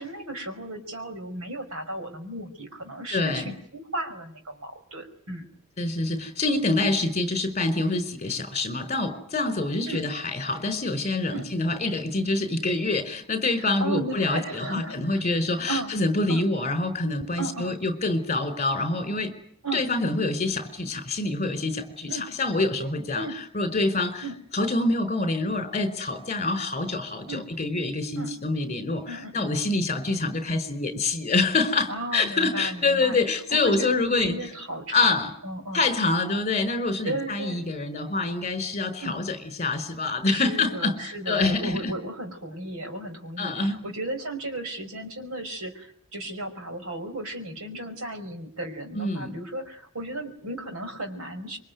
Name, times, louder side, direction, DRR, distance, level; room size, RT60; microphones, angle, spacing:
voice 1, 0.0-5.5 9.9-10.1 11.3-11.5 13.6-14.9 15.7-15.9 16.3-16.5 17.4-17.8 19.6-19.8 22.1-22.3 23.1-23.4 24.2-24.4 27.3-27.5 28.2-28.3 29.1-29.5 31.9-33.2 33.5-35.2 35.4-35.9 37.0-37.6 39.0-39.2 40.3-51.6, right 1 dB, 70° right, 6 dB, 5.1 m, -35 dB
voice 2, 3.1-3.5 5.8-19.3 19.7-24.3 24.5-34.3 34.9-35.3 35.7-41.9 43.4-43.8 48.9-49.4, left 3 dB, 30° left, 10 dB, 4.7 m, -26 dB
26.5 x 23.5 x 9.4 m, 0.65 s
head